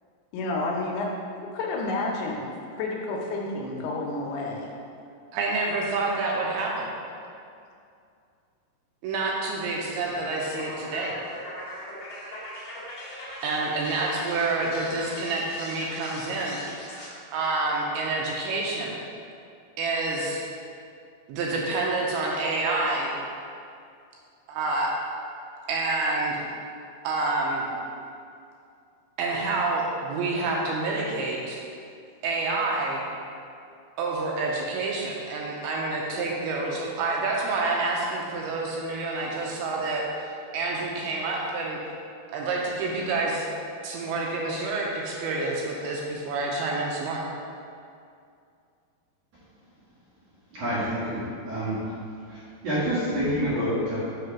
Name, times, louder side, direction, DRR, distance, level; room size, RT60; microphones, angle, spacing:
voice 1, 0.3-1.1 1.4-2.5 2.8-4.7, left 2 dB, 80° left, -1 dB, 2.7 m, -30 dB
voice 2, 5.3-6.9 9.0-11.2 13.4-16.6 17.3-19.0 19.8-20.4 21.3-23.2 24.5-24.9 25.7-26.4 27.0-27.7 29.2-31.6 32.2-33.1 34.0-40.0 40.5-41.8 42.3-43.5 43.8-47.2, right 3 dB, 80° right, -2 dB, 2.4 m, -28 dB
sound 1, 10.2-17.1, left 1 dB, 55° left, 1.8 m, -40 dB
voice 3, 50.5-51.2 51.4-51.8 52.3-54.0, equal, 55° right, -11 dB, 2.0 m, -27 dB
6.7 x 3.3 x 5.8 m, 2.4 s
omnidirectional pair, 4.7 m